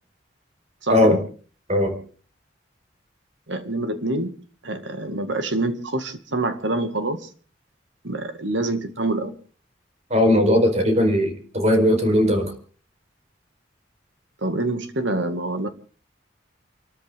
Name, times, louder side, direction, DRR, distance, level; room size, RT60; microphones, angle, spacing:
voice 1, 0.8-1.2 3.5-4.4 4.6-7.3 8.0-9.3 14.4-15.7, right 2 dB, 85° right, 8 dB, 2.1 m, -26 dB
voice 2, 10.1-12.5, left 1 dB, 35° right, 4 dB, 4.4 m, -18 dB
29.0 x 13.5 x 3.7 m, 0.41 s
head